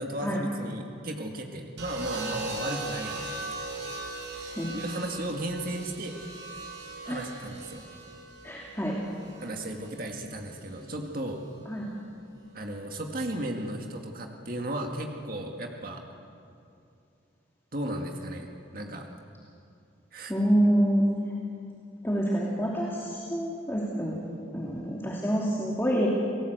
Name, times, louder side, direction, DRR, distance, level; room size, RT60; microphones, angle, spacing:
voice 1, 0.0-3.3 4.7-6.2 7.0-7.9 9.4-11.4 12.5-16.0 17.7-18.5 18.7-19.1 20.1-20.3, right 1 dB, 50° right, 2 dB, 2.1 m, -35 dB
sound 1, 1.8-9.9 11.1-11.5, right 3 dB, 70° right, 6.4 m, -39 dB
voice 2, 8.4-8.9 11.7-11.9 20.3-21.1 22.0-24.2 24.5-26.1, equal, 10° left, -5 dB, 2.8 m, -27 dB
29.5 x 19.0 x 8.1 m, 2.6 s
head